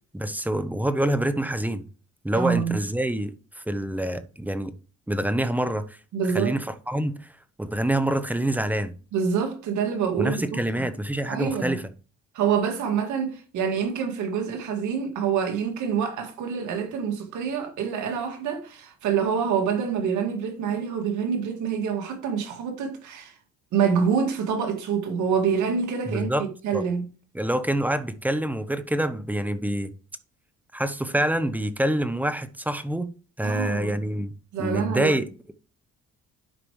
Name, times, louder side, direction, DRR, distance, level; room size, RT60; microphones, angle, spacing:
voice 1, 0.1-1.8 2.2-4.7 5.1-6.0 6.3-7.3 7.6-9.0 10.2-11.9 26.1-26.5 26.7-26.8 27.3-29.9 30.7-33.1 33.4-34.3 34.6-35.3, right 1 dB, 5° right, 0.8 m, -26 dB
voice 2, 2.3-2.8 6.1-6.5 9.1-10.9 11.3-11.8 12.3-23.3 23.7-27.0 33.4-34.0 34.5-35.2, right 7 dB, 85° right, 2.1 m, -26 dB
11.5 x 4.9 x 3.1 m
cardioid pair, 95°, 29 cm